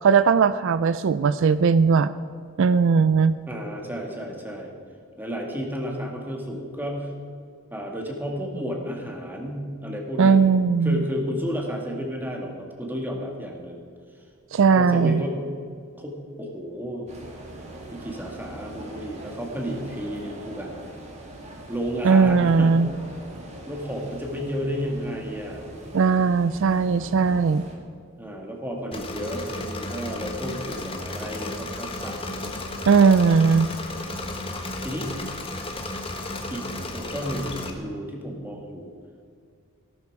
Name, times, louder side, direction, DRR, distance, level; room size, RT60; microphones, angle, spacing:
voice 1, 0.0-2.1 2.6-3.4 10.2-11.0 14.5-15.2 22.0-22.9 25.9-27.6 32.8-33.7, right 5 dB, 55° right, 14 dB, 0.4 m, -18 dB
voice 2, 3.5-4.7 5.2-7.1 7.7-10.4 10.8-13.8 14.7-15.5 16.0-17.1 17.9-20.7 21.7-22.8 23.7-25.7 28.2-32.5 34.8-35.1 36.5-36.6 36.9-38.9, equal, 10° right, 0 dB, 2.0 m, -32 dB
sound 1, 17.1-27.8, right 1 dB, 30° right, 2.1 m, -41 dB
Engine / Mechanisms, 28.9-37.7, left 2 dB, 25° left, 1.4 m, -33 dB
17.5 x 12.0 x 4.8 m, 2.2 s
head